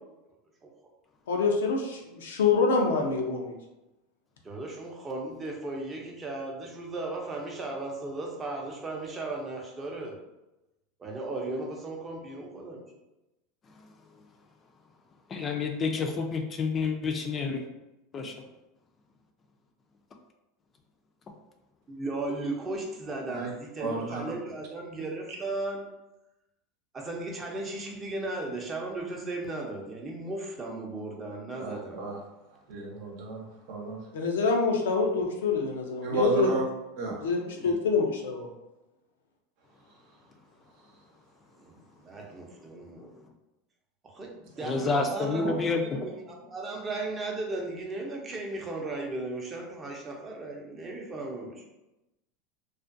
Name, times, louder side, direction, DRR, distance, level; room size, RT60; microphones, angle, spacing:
voice 1, 1.3-3.5 34.1-36.5 37.2-38.5, left 4 dB, 90° left, 1 dB, 0.5 m, -26 dB
voice 2, 4.4-10.2 11.0-12.8 21.9-25.8 26.9-32.0 41.5-43.1 44.0-51.6, right 2 dB, 25° right, 0 dB, 0.6 m, -36 dB
voice 3, 15.3-17.6 18.1-18.3 44.6-45.8, left 4 dB, 30° left, 3 dB, 0.4 m, -29 dB
voice 4, 23.8-24.2 31.5-32.2 32.7-34.0 36.0-36.6 37.0-37.2 37.6-37.7 45.4-45.5, right 3 dB, 65° right, -1 dB, 0.7 m, -32 dB
2.4 x 2.2 x 2.5 m, 0.96 s
supercardioid pair, 110°, 0 cm